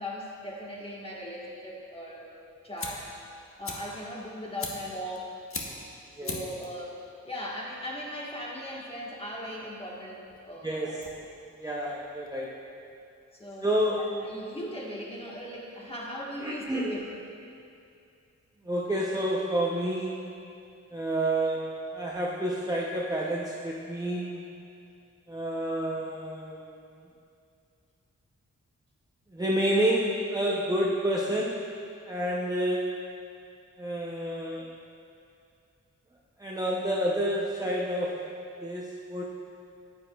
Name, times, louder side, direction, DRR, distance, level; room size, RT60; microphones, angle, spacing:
voice 1, 0.0-2.3 2.6-3.1 3.6-5.3 6.2-11.3 13.3-13.7 14.0-17.1, equal, 20° left, -4 dB, 1.3 m, -38 dB
Fire, 2.3-12.8, left 3 dB, 45° left, 0.9 m, -42 dB
voice 2, 10.6-10.9 11.6-12.6 13.6-14.0 16.4-16.9 18.6-20.2 20.9-24.4 25.3-26.7 29.3-31.6 32.0-32.9 33.8-34.7 36.4-38.2 38.6-39.2, right 1 dB, 15° right, -4 dB, 0.6 m, -29 dB
9.0 x 8.0 x 2.3 m, 2.5 s
wide cardioid pair, 85°, 30 cm